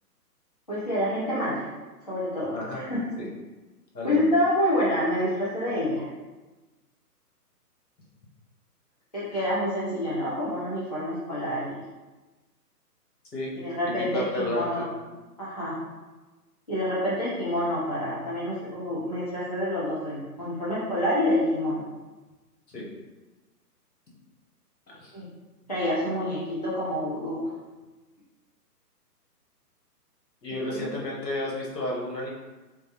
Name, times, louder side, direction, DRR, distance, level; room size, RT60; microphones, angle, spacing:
voice 1, 0.7-1.7 2.1-3.0 4.0-6.1 9.1-11.8 13.5-14.9 15.4-15.8 16.7-21.8 25.1-25.3 25.7-27.5 30.7-30.9, left 1 dB, 30° left, -9 dB, 0.3 m, -27 dB
voice 2, 2.5-2.8 3.2-3.3 3.9-4.2 13.3-13.5 13.8-14.8 22.7-22.9 24.9-25.1 26.0-26.2 30.4-32.3, left 1 dB, 85° left, -4 dB, 1.2 m, -32 dB
3.1 x 2.2 x 2.9 m, 1.2 s
figure-of-eight pair, 140°, 48 cm